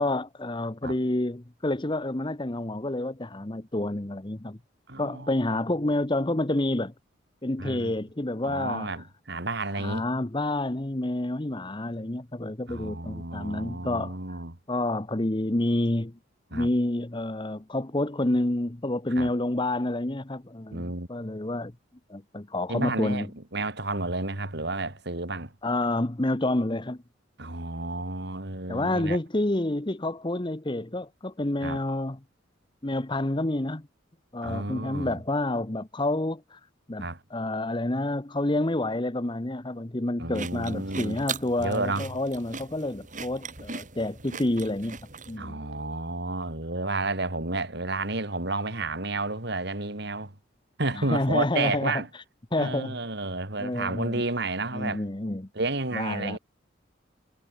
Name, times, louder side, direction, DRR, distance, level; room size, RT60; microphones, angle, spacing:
voice 1, 0.0-4.6 5.0-6.9 7.4-9.1 9.7-14.4 14.7-16.2 16.5-21.7 22.1-23.3 25.6-27.0 28.7-32.2 32.8-33.9 34.3-36.6 36.9-45.0 45.3-45.6 50.9-52.2 52.5-53.0 53.6-54.2 54.7-55.5 55.9-56.4, left 1 dB, 25° left, 1.0 m, -29 dB
voice 2, 4.9-5.3 7.6-7.9 8.4-10.0 12.7-14.6 16.5-16.7 19.2-19.3 20.7-21.1 22.7-23.3 23.5-25.5 27.4-29.2 31.6-31.8 34.4-35.2 37.0-37.2 40.2-41.2 41.6-42.1 45.4-50.3 50.8-52.1 52.6-55.0 55.5-56.4, right 2 dB, 60° right, 3.2 m, -31 dB
sound 1, 40.3-45.4, right 5 dB, 40° right, 6.3 m, -39 dB
head